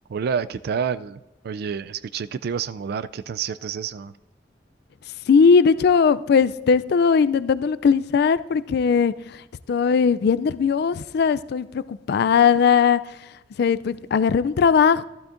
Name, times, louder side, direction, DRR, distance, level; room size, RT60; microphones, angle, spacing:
voice 1, 0.1-1.2 1.4-4.1, right 6 dB, 60° right, 0.3 m, -28 dB
voice 2, 5.3-9.4 9.7-13.0 13.6-15.0, left 6 dB, 60° left, 0.3 m, -19 dB
14.5 x 12.0 x 2.5 m
head